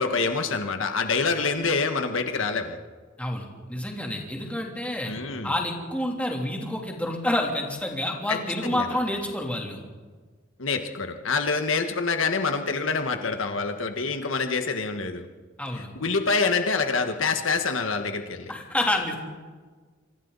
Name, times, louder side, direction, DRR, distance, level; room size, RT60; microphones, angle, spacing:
voice 1, 0.0-2.8 5.1-5.5 8.3-8.4 8.6-8.9 10.6-15.3 15.9-18.5, left 4 dB, 85° left, 6 dB, 1.5 m, -26 dB
voice 2, 3.2-5.1 5.4-9.8 15.6-15.9 18.5-19.1, left 1 dB, 5° left, 0 dB, 3.2 m, -28 dB
27.0 x 25.0 x 4.1 m, 1.5 s
head